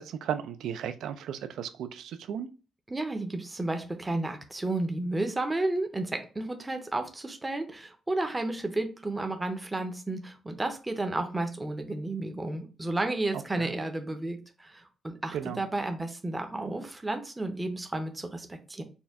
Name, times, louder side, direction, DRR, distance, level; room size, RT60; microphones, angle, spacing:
voice 1, 0.0-2.5 13.3-13.7 15.3-15.6, right 9 dB, 85° right, 10 dB, 0.4 m, -35 dB
voice 2, 2.9-18.8, right 2 dB, 15° right, 6 dB, 0.6 m, -32 dB
4.2 x 2.2 x 3.5 m, 0.35 s
cardioid pair, 145°, 0 cm